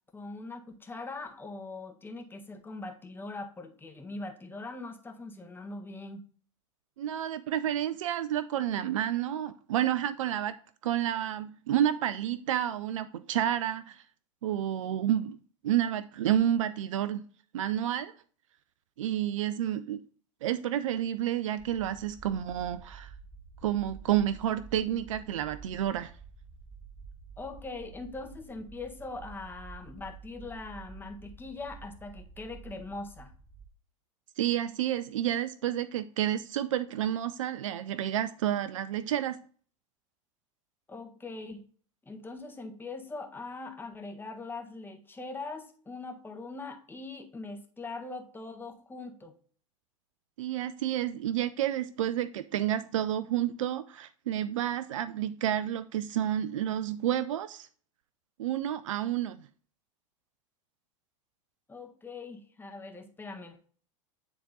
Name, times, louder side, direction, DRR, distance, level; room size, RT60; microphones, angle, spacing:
voice 1, 0.1-6.2 27.4-33.3 40.9-41.6 42.0-49.3 61.7-63.6, left 3 dB, 15° left, 1.4 m, -41 dB
voice 2, 7.0-10.5 10.8-14.0 14.4-15.4 15.6-17.2 17.5-18.1 19.0-20.0 20.4-23.1 23.6-26.1 34.4-39.4 50.4-57.7 58.4-59.4, right 11 dB, 80° right, 0.5 m, -30 dB
sound 1, 21.6-33.7, right 4 dB, 5° right, 0.9 m, -50 dB
9.8 x 3.7 x 4.0 m
hypercardioid pair, 95°, 16 cm